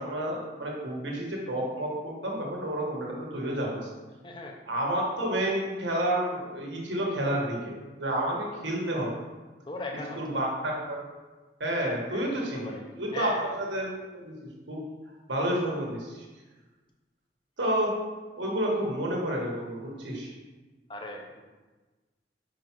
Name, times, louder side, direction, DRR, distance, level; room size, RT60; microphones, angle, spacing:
voice 1, 0.0-3.9 4.7-9.1 10.2-11.0 11.6-13.9 14.1-14.3 14.7-14.8 15.3-16.2 17.6-17.9 18.4-20.3, right 1 dB, 90° right, -2 dB, 1.6 m, -30 dB
voice 2, 4.2-4.6 9.7-10.4 12.1-12.2 12.5-12.8 13.1-13.4 20.9-21.4, left 2 dB, 25° left, 1 dB, 0.7 m, -38 dB
5.8 x 4.9 x 4.6 m, 1.3 s
head